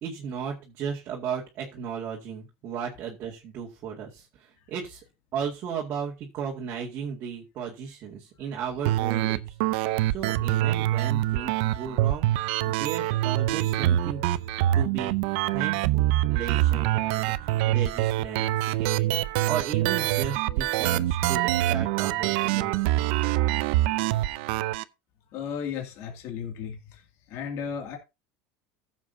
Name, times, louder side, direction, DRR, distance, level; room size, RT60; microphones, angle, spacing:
voice 1, 0.0-4.3 4.7-5.0 5.3-9.4 10.1-12.3 12.7-14.2 14.7-19.2 19.5-22.8, right 7 dB, 35° right, 2.1 m, -35 dB
sound 1, 8.9-24.8, right 14 dB, 65° right, 0.6 m, -25 dB
voice 2, 25.3-27.0 27.3-28.0, left 7 dB, 50° left, 2.4 m, -34 dB
15.0 x 7.3 x 2.7 m
supercardioid pair, 145°, 6 cm